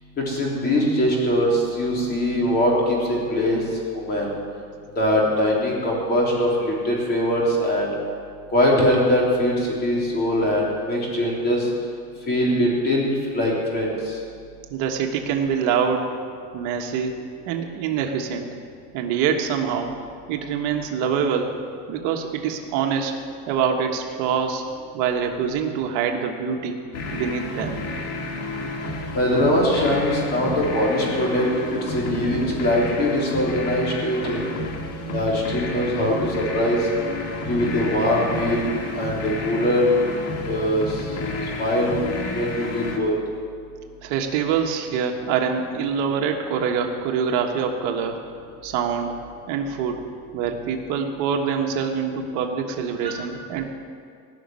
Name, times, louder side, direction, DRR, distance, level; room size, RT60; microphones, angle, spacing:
voice 1, 0.2-3.6 3.9-4.3 5.0-7.9 8.5-11.7 12.3-14.2 29.1-34.5 35.1-36.9 37.4-38.7 38.9-39.9 40.4-41.1 41.6-42.0 42.3-43.1 53.0-53.1, left 1 dB, 30° left, -3 dB, 3.6 m, -22 dB
voice 2, 14.7-16.1 16.5-17.1 17.5-18.5 18.9-19.9 20.3-21.5 21.9-23.2 23.5-24.6 24.9-26.8 27.1-27.8 44.0-48.2 48.6-49.1 49.5-50.0 50.3-53.7, right 7 dB, 65° right, 3 dB, 1.5 m, -25 dB
sound 1, 26.9-43.0, left 2 dB, 50° left, 1.8 m, -31 dB
17.5 x 6.4 x 9.5 m, 2.3 s
cardioid pair, 160°, 33 cm